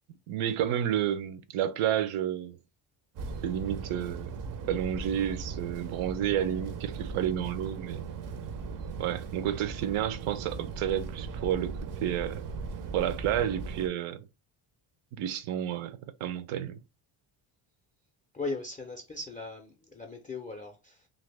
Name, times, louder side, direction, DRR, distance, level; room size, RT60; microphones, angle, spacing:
voice 1, 0.3-2.6 3.4-4.3 4.7-8.0 9.0-12.4 12.9-14.3 15.2-16.8, right 10 dB, 85° right, 0.6 m, -30 dB
sound 1, 3.2-13.9, right 5 dB, 45° right, 0.4 m, -38 dB
voice 2, 18.3-21.1, left 3 dB, 20° left, 0.4 m, -38 dB
2.9 x 2.6 x 3.2 m
cardioid pair, 150°, 49 cm